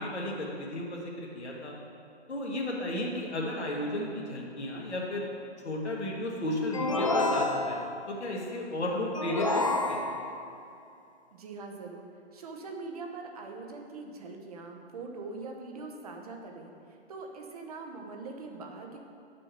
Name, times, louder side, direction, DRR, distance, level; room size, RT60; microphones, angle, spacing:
voice 1, 0.0-1.7 2.3-5.3 5.6-10.1, left 1 dB, 75° left, -2 dB, 1.8 m, -34 dB
sound 1, 6.7-8.1 9.1-10.5, left 2 dB, 30° left, 0.4 m, -29 dB
voice 2, 11.3-19.0, right 3 dB, 35° right, 2 dB, 1.0 m, -42 dB
9.2 x 6.3 x 4.5 m, 2.6 s
figure-of-eight pair, 150°, 34 cm